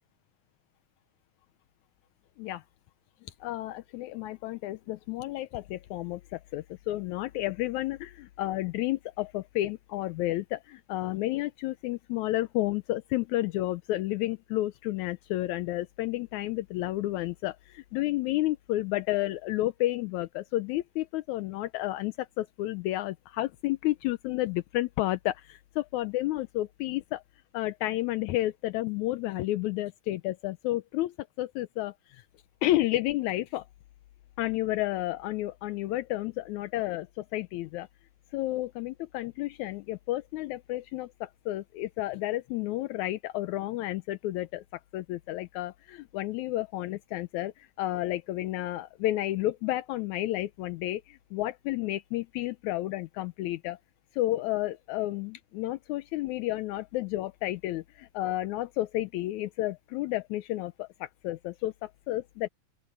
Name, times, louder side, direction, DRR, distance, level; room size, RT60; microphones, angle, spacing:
voice 1, 3.4-27.2 27.5-32.2 32.6-33.7 34.4-37.9 38.3-53.8 54.2-62.5, left 16 dB, 80° left, 2.0 m, -31 dB
open air
omnidirectional pair, 3.4 m